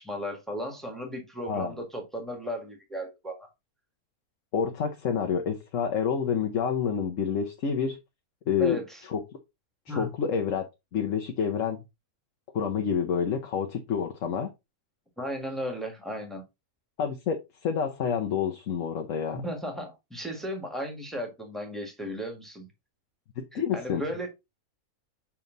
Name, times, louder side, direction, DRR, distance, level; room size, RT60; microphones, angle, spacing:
voice 1, 0.0-3.5 8.6-9.0 9.9-10.1 15.2-16.4 19.3-22.7 23.5-24.3, equal, ahead, 1.7 m, -35 dB
voice 2, 4.5-8.0 8.5-8.8 9.1-9.2 9.9-10.6 10.9-11.8 12.5-14.5 17.0-17.4 17.6-19.4 23.5-24.0, left 7 dB, 65° left, 1.2 m, -28 dB
7.2 x 3.5 x 3.9 m
omnidirectional pair, 1.5 m